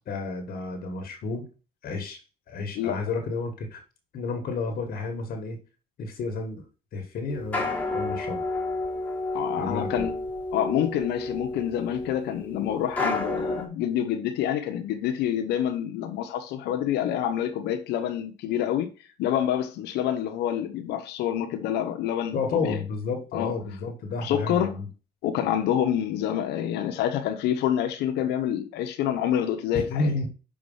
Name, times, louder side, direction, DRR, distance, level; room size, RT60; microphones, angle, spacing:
voice 1, 0.1-1.5 1.8-2.2 2.5-3.8 4.1-5.6 6.0-6.6 6.9-8.4 9.6-10.0 22.3-24.9 29.7-30.3, left 3 dB, 60° left, 1.6 m, -31 dB
sound 1, 7.3-13.6, left 2 dB, 10° left, 2.4 m, -31 dB
voice 2, 9.3-10.1 10.5-18.9 19.2-22.8 23.3-23.5 24.2-24.8 25.2-30.1, left 10 dB, 85° left, 0.9 m, -27 dB
6.3 x 4.9 x 5.6 m
cardioid pair, 110°, 17 cm